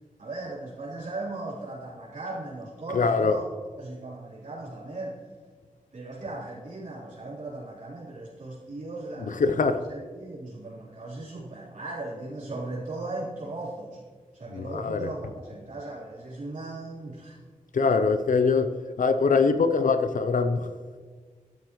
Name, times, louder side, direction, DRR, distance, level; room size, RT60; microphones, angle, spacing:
voice 1, 0.2-3.4 3.8-5.2 5.9-14.0 14.3-17.4, right 2 dB, 70° right, -9 dB, 3.7 m, -37 dB
voice 2, 2.9-3.4 9.3-9.8 14.5-15.1 17.7-20.7, left 4 dB, 70° left, 10 dB, 0.6 m, -23 dB
12.5 x 10.5 x 3.1 m, 1.5 s
cardioid pair, 50°, 14 cm